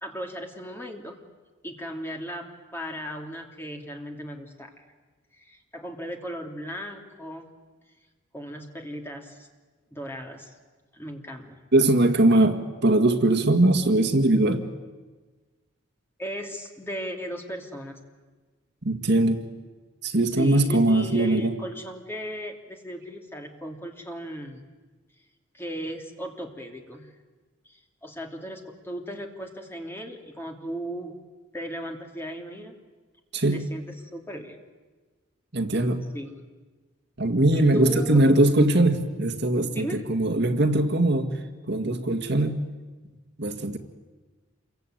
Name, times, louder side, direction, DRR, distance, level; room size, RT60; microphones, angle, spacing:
voice 1, 0.0-1.2 1.6-2.5 2.7-4.8 5.3-7.5 8.3-9.5 9.9-10.5 10.9-11.6 16.2-18.0 20.4-24.6 25.5-27.1 27.6-31.1 31.5-32.7 33.5-33.9 34.1-34.6 36.1-36.3 37.5-38.2 39.7-40.1, equal, 10° left, 2 dB, 2.8 m, -36 dB
voice 2, 11.7-14.7 18.8-19.4 20.0-21.5 33.3-33.6 35.5-36.0 37.2-42.6 43.4-43.8, right 1 dB, 55° right, 6 dB, 1.9 m, -21 dB
28.0 x 23.0 x 9.2 m, 1.3 s
head